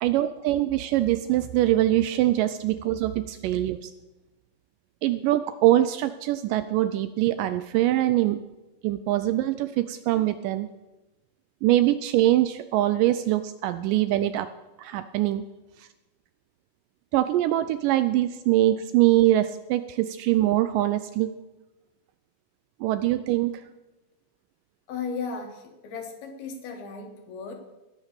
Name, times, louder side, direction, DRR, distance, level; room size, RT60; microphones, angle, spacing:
voice 1, 0.0-3.9 5.0-8.4 8.8-10.7 11.6-14.5 14.8-15.4 15.8-15.9 17.1-21.3 22.8-23.5, right 14 dB, 85° right, 12 dB, 1.9 m, -23 dB
voice 2, 24.9-27.5, left 5 dB, 80° left, 4 dB, 3.4 m, -35 dB
18.0 x 6.4 x 6.6 m, 1.1 s
omnidirectional pair, 4.3 m